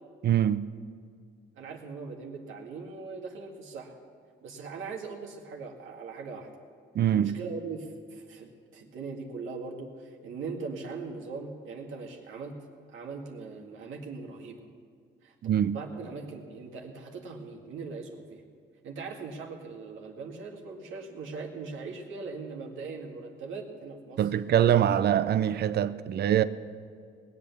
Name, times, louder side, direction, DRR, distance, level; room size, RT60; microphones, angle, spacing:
voice 1, 0.2-0.6 6.9-7.3 15.4-15.8 24.2-26.4, right 10 dB, 55° right, 0.6 m, -24 dB
voice 2, 1.6-4.0 4.4-6.5 7.1-12.6 12.9-14.7 15.2-15.3 15.6-18.4 18.8-24.3, right 4 dB, 80° right, 2.1 m, -40 dB
20.0 x 8.3 x 7.2 m
cardioid pair, 90°, 20 cm